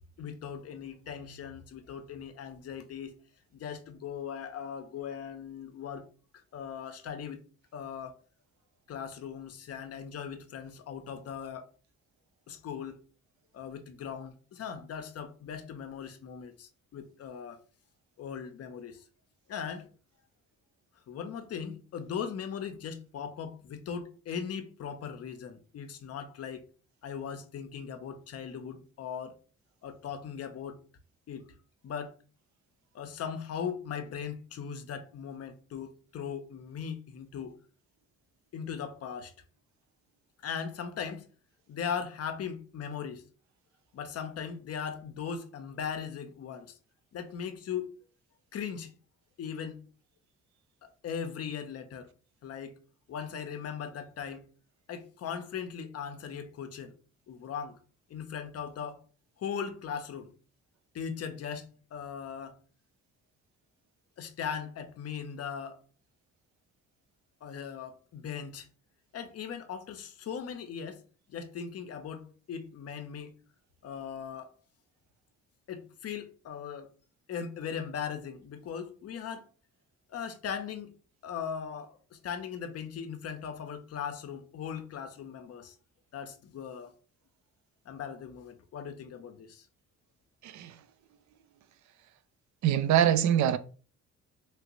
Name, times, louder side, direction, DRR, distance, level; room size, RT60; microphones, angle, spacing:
voice 1, 0.2-3.2 3.5-6.1 6.5-7.4 7.7-8.1 8.9-11.7 12.5-13.0 13.5-17.6 18.2-19.0 19.5-19.9 21.1-26.6 27.0-29.4 29.8-30.8 31.3-31.5 31.8-32.2 32.9-37.6 38.5-39.3 40.4-41.3 41.7-43.2 43.9-46.8 47.1-47.9 48.5-48.9 49.4-49.8 50.8-52.1 52.4-52.8 53.1-54.4 54.9-56.9 57.3-57.8 58.1-59.0 59.4-60.3 60.9-62.6 64.2-65.8 67.4-68.7 69.1-71.0 71.3-73.4 73.8-74.5 75.7-76.9 77.3-79.5 80.1-80.9 81.2-85.7 86.1-86.9 87.9-89.7, left 7 dB, 55° left, 0.6 m, -39 dB
voice 2, 90.4-90.8 92.6-93.6, right 10 dB, 70° right, 0.5 m, -24 dB
3.1 x 2.4 x 3.0 m
cardioid pair, 90°, 30 cm